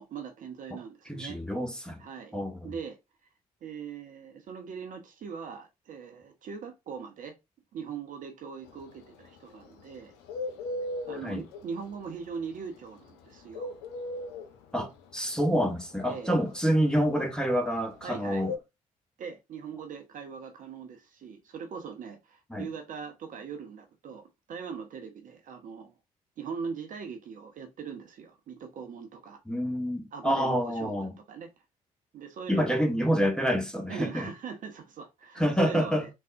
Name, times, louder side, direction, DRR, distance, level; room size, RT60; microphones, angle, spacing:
voice 1, 0.0-1.4 2.0-2.4 2.6-3.0 3.6-7.4 7.7-10.1 11.1-13.7 16.0-16.3 18.0-18.5 19.2-25.9 26.4-29.4 30.1-31.5 32.1-32.9 33.9-36.1, right 6 dB, 45° right, 0.6 m, -41 dB
voice 2, 1.1-2.0 2.3-2.7 11.2-11.4 14.7-18.5 22.5-22.7 29.5-31.1 32.5-34.3 35.4-36.1, equal, 5° left, 0.8 m, -27 dB
Bird, 8.7-18.6, left 2 dB, 65° left, 0.5 m, -37 dB
3.5 x 2.0 x 2.4 m
figure-of-eight pair, 40°, 18 cm